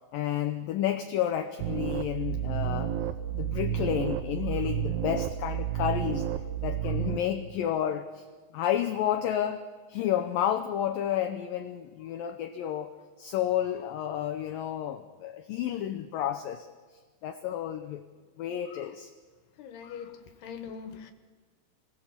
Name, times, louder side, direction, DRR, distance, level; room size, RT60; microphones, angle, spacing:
voice 1, 0.1-3.0 3.3-6.3 6.6-8.3 8.5-12.9 13.2-16.7 17.2-18.1 18.4-19.1 19.8-20.2, left 10 dB, 85° left, 1.9 m, -31 dB
sound 1, 1.6-7.2, right 10 dB, 70° right, 2.6 m, -31 dB
voice 2, 19.6-21.1, left 7 dB, 70° left, 3.2 m, -42 dB
29.5 x 19.5 x 7.3 m
omnidirectional pair, 5.1 m